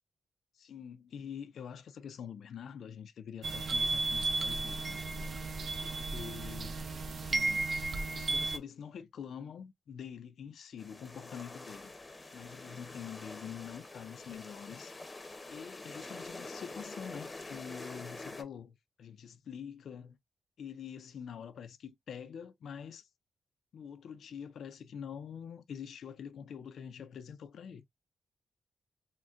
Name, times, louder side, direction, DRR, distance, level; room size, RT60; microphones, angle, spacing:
voice 1, 0.5-5.3 5.8-6.7 7.2-7.7 8.2-11.9 12.3-14.9 15.5-20.2 20.6-23.1 23.7-27.8, left 8 dB, 75° left, 0.4 m, -46 dB
sound 1, 3.4-8.6, right 3 dB, 50° right, 0.5 m, -34 dB
sound 2, 10.8-18.4, left 2 dB, 25° left, 0.7 m, -46 dB
3.8 x 2.1 x 2.4 m
cardioid pair, 95°, 0 cm